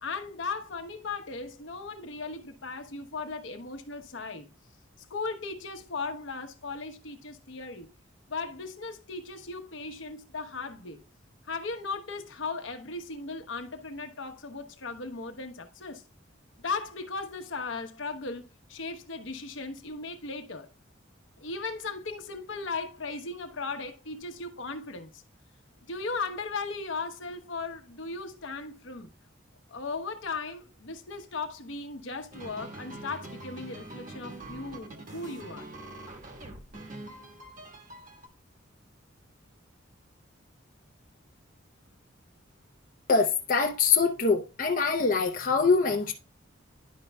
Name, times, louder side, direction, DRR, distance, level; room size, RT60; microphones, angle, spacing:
voice 1, 0.0-4.5 5.1-7.9 8.3-11.0 11.5-16.0 16.6-20.7 21.4-25.2 25.9-29.1 29.7-35.7, left 4 dB, 70° left, 0.9 m, -37 dB
sound 1, 32.3-38.3, right 2 dB, 40° right, 1.2 m, -44 dB
voice 2, 43.1-46.1, left 4 dB, 40° left, 0.6 m, -24 dB
10.5 x 5.2 x 2.2 m
head